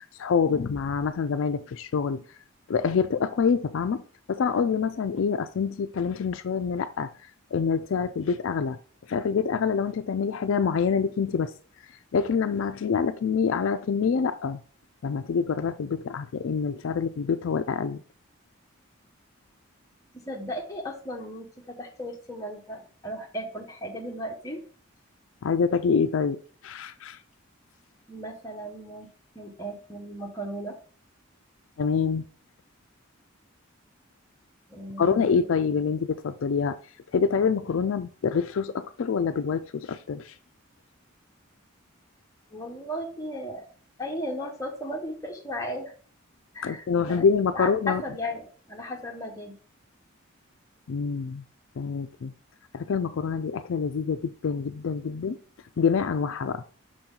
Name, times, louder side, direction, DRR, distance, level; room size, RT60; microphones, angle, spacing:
voice 1, 0.2-2.2 2.7-4.0 4.3-7.1 7.5-8.8 9.1-11.5 12.1-14.6 15.0-18.0 25.4-26.4 26.6-27.2 31.8-32.2 35.0-36.8 37.1-40.3 46.6-48.0 50.9-51.4 51.8-52.3 52.7-55.4 55.8-56.6, left 6 dB, 70° left, 0.4 m, -26 dB
voice 2, 20.1-24.6 28.1-29.1 29.3-30.8 34.7-35.5 42.5-43.6 44.0-45.9 46.5-47.2 47.5-49.6, equal, 15° left, 1.1 m, -36 dB
6.2 x 4.4 x 3.7 m
head